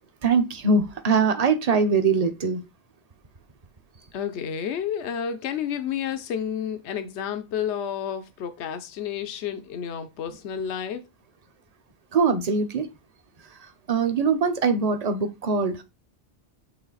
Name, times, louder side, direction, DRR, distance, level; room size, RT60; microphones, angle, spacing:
voice 1, 0.2-2.6 12.1-12.9 13.9-15.8, right 4 dB, 40° right, 0.9 m, -22 dB
voice 2, 4.1-11.0, left 8 dB, 80° left, 1.0 m, -30 dB
8.8 x 3.3 x 4.0 m
omnidirectional pair, 1.1 m